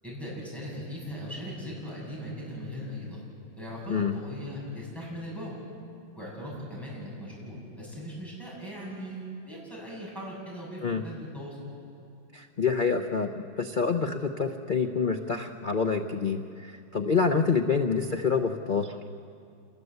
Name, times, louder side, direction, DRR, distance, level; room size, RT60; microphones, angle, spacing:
voice 1, 0.0-3.2 3.6-5.6 6.1-11.6, equal, ahead, -5 dB, 7.7 m, -39 dB
voice 2, 12.3-19.1, left 5 dB, 60° left, 5 dB, 0.5 m, -27 dB
27.5 x 20.0 x 8.0 m, 2.4 s
omnidirectional pair, 2.1 m